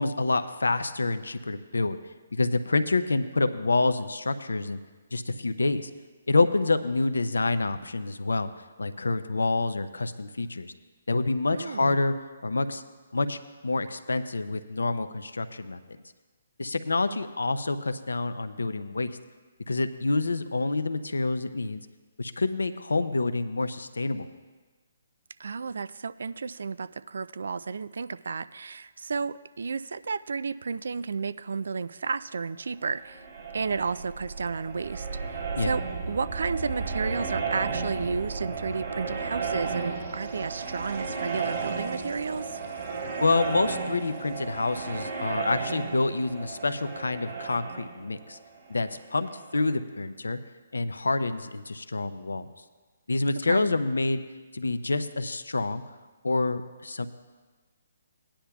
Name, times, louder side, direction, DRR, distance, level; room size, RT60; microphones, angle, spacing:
voice 1, 0.0-2.0 2.3-4.8 5.1-5.9 6.3-8.5 8.8-10.7 11.1-12.1 12.4-12.8 13.1-15.8 16.6-19.1 19.7-21.8 22.2-24.3 35.6-35.7 43.2-48.4 48.7-50.4 50.7-52.5 53.1-54.2 54.5-55.8 56.2-57.1, left 3 dB, 85° left, 10 dB, 0.6 m, -27 dB
voice 2, 11.5-12.0 25.4-33.2 33.5-35.1 35.6-42.6 53.5-53.7, right 5 dB, 70° right, 16 dB, 0.3 m, -32 dB
sound 1, 32.9-49.5, right 5 dB, 45° right, 2.6 m, -34 dB
17.5 x 10.0 x 2.3 m, 1.3 s
hypercardioid pair, 140°, 0 cm